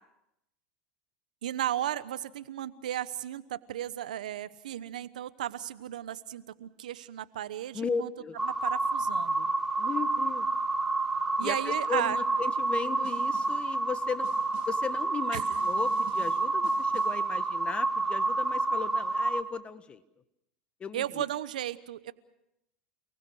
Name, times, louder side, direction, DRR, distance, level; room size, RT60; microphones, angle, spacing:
voice 1, 1.4-8.1 8.4-9.5 11.4-12.2 15.3-15.4 20.9-22.1, right 12 dB, 85° right, 15 dB, 1.0 m, -35 dB
voice 2, 7.7-8.4 9.8-10.5 11.4-14.3 14.7-20.0 20.8-21.2, left 6 dB, 25° left, 11 dB, 1.6 m, -36 dB
sound 1, 8.4-19.4, right 3 dB, 10° right, 1.9 m, -29 dB
Snare drum, 13.0-13.7 14.2-14.9 15.4-17.3, right 13 dB, 60° right, 3.5 m, -51 dB
29.0 x 19.5 x 6.4 m, 0.85 s
hypercardioid pair, 95°, 4 cm